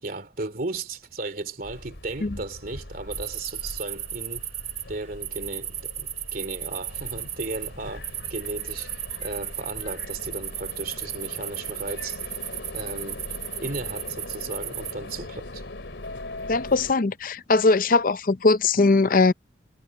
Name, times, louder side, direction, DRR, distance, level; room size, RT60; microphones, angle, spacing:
voice 1, 0.0-4.4 4.9-12.4 12.7-13.2 13.6-15.6, right 2 dB, 50° right, 2.8 m, -35 dB
sound 1, 1.6-16.9, left 2 dB, 85° left, 3.0 m, -40 dB
sound 2, 3.1-4.8 5.2-7.7 8.0-14.9, right 10 dB, 35° right, 1.3 m, -35 dB
voice 2, 16.5-19.3, left 3 dB, 50° left, 0.6 m, -20 dB
head